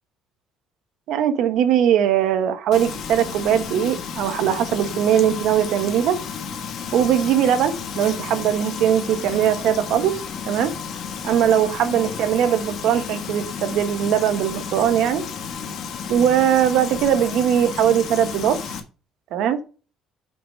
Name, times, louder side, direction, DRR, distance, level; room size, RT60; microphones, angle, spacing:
voice 1, 1.1-6.2 6.9-10.1 10.5-10.7 11.2-15.2 16.1-18.8 19.3-19.6, right 9 dB, 70° right, 9 dB, 1.2 m, -20 dB
Frying (food), 2.7-18.8, left 6 dB, 55° left, 1.3 m, -32 dB
6.0 x 4.9 x 6.3 m, 0.35 s
cardioid pair, 125°, 0 cm